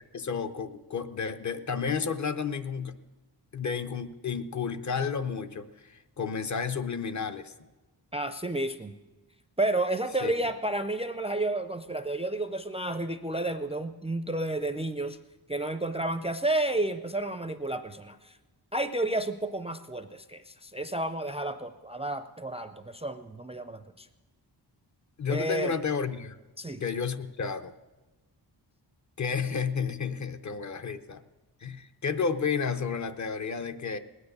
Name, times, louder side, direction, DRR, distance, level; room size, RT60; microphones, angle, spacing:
voice 1, 0.1-2.9 3.5-7.5 10.2-10.3 25.2-26.4 26.8-27.7 29.2-31.2 31.6-34.0, left 6 dB, 40° left, 10 dB, 0.7 m, -31 dB
voice 2, 8.1-9.0 9.6-15.2 15.5-18.4 18.7-24.1 25.3-25.7 26.6-26.8, right 2 dB, 15° right, 10 dB, 0.4 m, -31 dB
19.5 x 9.5 x 6.6 m, 1.1 s
wide cardioid pair, 165°, 43 cm